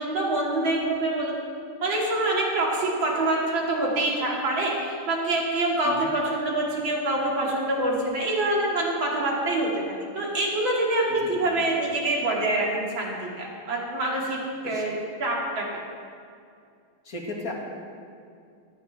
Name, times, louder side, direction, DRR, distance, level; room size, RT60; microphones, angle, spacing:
voice 1, 0.0-1.4 1.8-14.9 15.2-15.7, right 2 dB, 65° right, -3 dB, 3.3 m, -26 dB
voice 2, 11.1-11.7 14.6-14.8 17.0-17.5, left 2 dB, 40° left, -1 dB, 2.6 m, -36 dB
18.5 x 15.5 x 3.5 m, 2.4 s
omnidirectional pair, 2.3 m